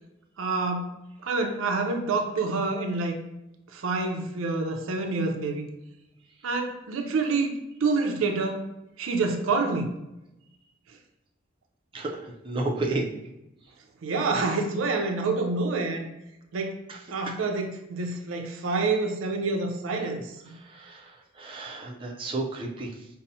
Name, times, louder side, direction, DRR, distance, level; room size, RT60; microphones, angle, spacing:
voice 1, 0.4-0.9 1.2-3.2 3.7-5.7 6.4-7.5 7.8-8.7 9.0-9.9 14.0-16.1 16.5-16.8 17.1-20.3, right 3 dB, 85° right, 4 dB, 0.5 m, -27 dB
voice 2, 11.9-13.1 16.9-17.3 20.4-23.1, right 2 dB, 25° right, -2 dB, 0.4 m, -33 dB
5.3 x 2.0 x 2.7 m, 0.91 s
head